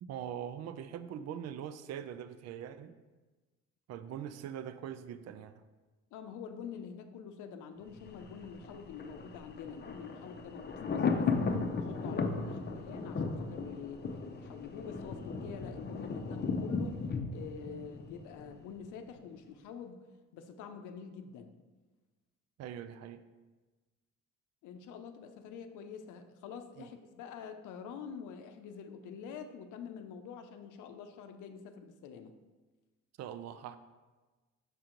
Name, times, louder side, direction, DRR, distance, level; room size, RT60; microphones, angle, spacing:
voice 1, 0.0-2.9 3.9-5.6 12.4-12.5 22.6-23.2 26.8-26.9 33.2-33.8, right 9 dB, 60° right, 12 dB, 0.4 m, -42 dB
voice 2, 6.1-11.3 11.7-14.1 14.3-17.0 17.3-20.0 20.3-21.5 24.6-32.3, left 6 dB, 90° left, 7 dB, 0.6 m, -46 dB
Thunder, 7.9-18.9 19.2-19.3, left 4 dB, 35° left, 0.6 m, -36 dB
6.7 x 4.4 x 3.8 m, 1.3 s
cardioid pair, 90°, 30 cm